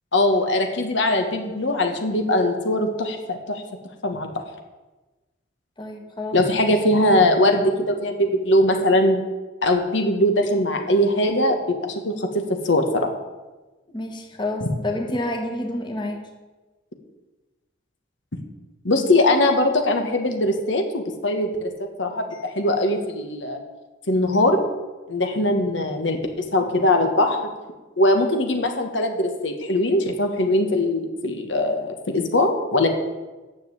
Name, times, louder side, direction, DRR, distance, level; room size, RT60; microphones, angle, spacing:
voice 1, 0.1-3.6 4.0-4.3 6.3-9.2 9.6-11.8 12.0-13.1 14.6-14.7 18.8-21.7 22.0-23.6 24.1-24.6 25.1-27.4 28.0-32.9, left 1 dB, 70° left, 4 dB, 1.4 m, -21 dB
voice 2, 5.8-6.7 13.9-16.2, left 1 dB, 25° left, 2 dB, 1.5 m, -29 dB
10.5 x 7.4 x 8.0 m, 1.2 s
head